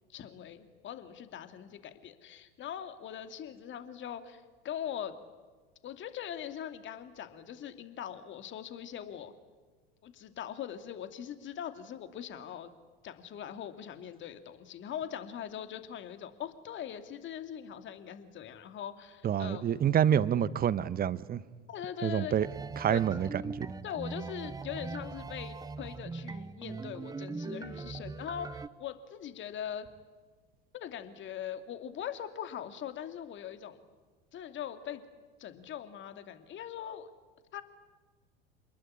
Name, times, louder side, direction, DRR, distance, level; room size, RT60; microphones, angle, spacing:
voice 1, 0.1-5.1 5.8-9.3 10.0-12.7 13.0-19.7 21.7-22.3 22.9-23.0 23.8-29.9 30.7-33.8 34.3-35.0 35.4-37.1 37.5-37.6, left 9 dB, 40° left, 9 dB, 2.6 m, -41 dB
voice 2, 19.2-21.4 22.0-22.5 22.8-23.7, right 9 dB, 30° right, 17 dB, 1.2 m, -28 dB
sound 1, 22.4-28.7, right 4 dB, 10° right, 0.8 m, -41 dB
28.0 x 21.0 x 9.9 m, 1.4 s
hypercardioid pair, 80°, 30 cm